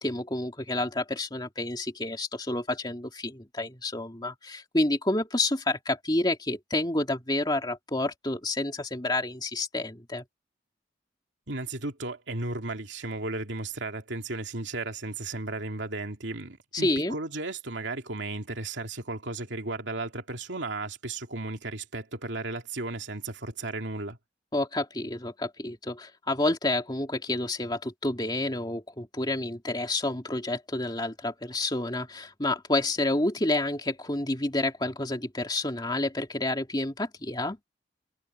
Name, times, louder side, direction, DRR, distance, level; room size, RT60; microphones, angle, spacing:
voice 1, 0.0-10.2 16.7-17.1 24.5-37.6, left 2 dB, 25° left, 2.6 m, -29 dB
voice 2, 11.5-24.2, right 2 dB, 80° right, 2.6 m, -35 dB
head